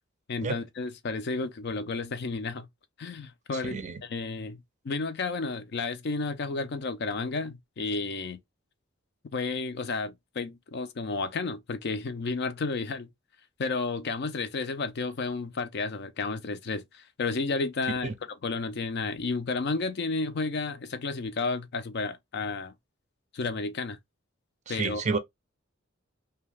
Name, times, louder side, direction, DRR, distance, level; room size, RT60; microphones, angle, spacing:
voice 1, 0.3-2.7 3.0-8.4 9.3-13.1 13.6-22.7 23.3-24.0 24.7-25.2, left 3 dB, 55° left, 0.5 m, -32 dB
voice 2, 3.7-4.0 18.0-18.1 24.7-25.2, right 4 dB, 35° right, 0.5 m, -30 dB
2.8 x 2.2 x 3.2 m
head